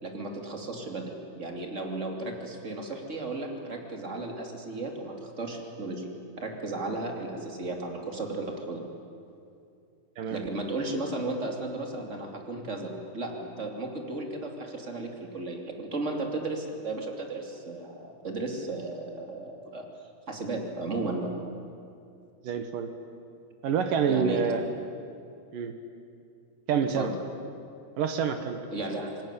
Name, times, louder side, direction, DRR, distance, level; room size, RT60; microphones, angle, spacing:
voice 1, 0.0-6.1 6.4-8.8 10.3-19.9 20.3-21.3 24.1-24.5 27.0-27.1 28.7-29.2, right 2 dB, 20° right, 2 dB, 2.3 m, -34 dB
voice 2, 22.4-22.9 23.6-24.6 25.5-25.7 26.7-27.1 28.0-28.6, right 6 dB, 65° right, 7 dB, 2.6 m, -27 dB
26.5 x 20.5 x 9.9 m, 2.6 s
omnidirectional pair, 4.8 m